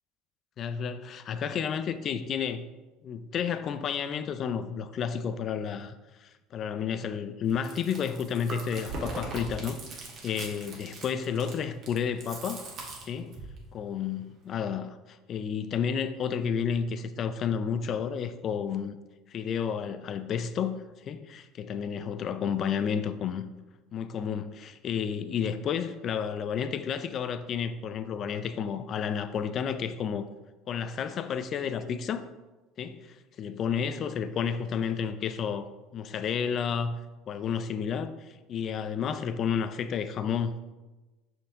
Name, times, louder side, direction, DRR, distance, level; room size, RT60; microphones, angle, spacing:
voice 1, 0.6-2.7 3.0-12.6 13.1-13.4 13.7-19.0 19.3-23.4 23.9-30.3 30.7-32.3 32.8-37.0 37.3-40.6, left 7 dB, 45° left, 0.5 m, -31 dB
Chewing mastication, 7.5-13.6, right 2 dB, 50° right, 1.6 m, -40 dB
5.8 x 5.4 x 3.7 m
hypercardioid pair, 70°, 0 cm